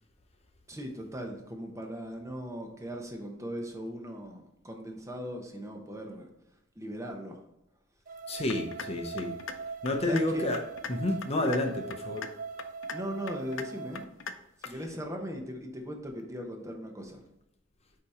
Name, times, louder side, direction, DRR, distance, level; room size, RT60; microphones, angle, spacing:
voice 1, 0.7-6.3 6.8-7.4 10.1-10.5 12.9-14.1 14.6-17.2, equal, 15° right, 2 dB, 0.8 m, -38 dB
sound 1, 8.1-14.0, right 4 dB, 45° right, 0.4 m, -41 dB
voice 2, 8.3-9.4 9.8-10.6 10.9-12.3 14.7-14.8, left 1 dB, 35° left, 4 dB, 0.6 m, -30 dB
sound 2, 8.5-8.9 9.2-9.5 9.9-10.2 10.5-10.9 11.2-11.6 11.9-12.3 12.6-13.0 13.3-13.6 14.0-14.3 14.6-14.7, left 6 dB, 80° left, 0.5 m, -38 dB
8.3 x 2.8 x 4.3 m, 0.85 s
head